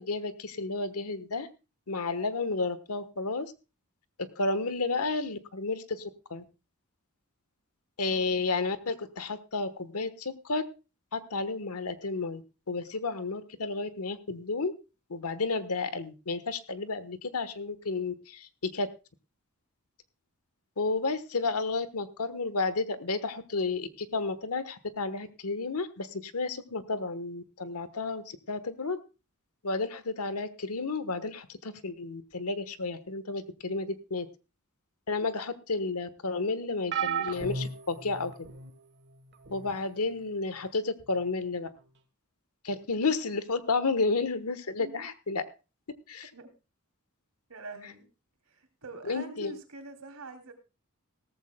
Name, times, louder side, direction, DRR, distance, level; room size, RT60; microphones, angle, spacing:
voice 1, 0.0-1.5 1.9-3.5 4.4-6.0 6.3-6.4 8.0-10.6 11.1-12.4 12.7-14.7 15.1-18.9 20.8-29.0 29.6-34.3 35.1-38.3 39.5-41.7 42.6-45.4 46.1-46.3 49.1-49.5, left 3 dB, 85° left, 12 dB, 1.2 m, -32 dB
voice 2, 8.1-8.5 44.8-45.1 46.3-46.5 47.5-48.1 48.5-50.5, right 2 dB, 75° right, 6 dB, 2.8 m, -45 dB
sound 1, 36.9-38.7 39.4-39.7 41.0-41.1, right 6 dB, 55° right, 1.4 m, -34 dB
17.5 x 14.5 x 2.2 m, 0.29 s
head